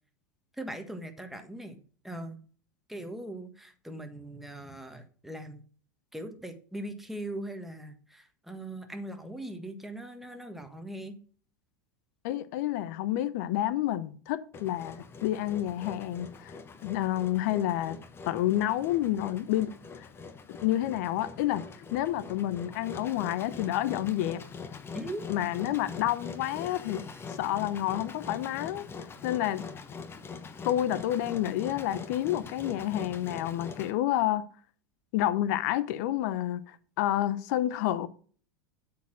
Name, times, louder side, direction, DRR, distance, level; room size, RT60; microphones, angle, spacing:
voice 1, 0.6-1.8 2.0-2.4 2.9-5.6 6.1-11.2 24.9-25.3, right 1 dB, ahead, 1.5 m, -40 dB
voice 2, 12.2-18.0 18.3-19.7 20.0-20.1 20.6-21.6 21.9-24.4 25.3-28.9 29.2-29.7 30.6-34.4 35.1-38.1, left 13 dB, 60° left, 0.7 m, -29 dB
Engine, 14.5-33.9, left 5 dB, 25° left, 1.2 m, -43 dB
8.2 x 4.8 x 6.1 m
hypercardioid pair, 95°, 10 cm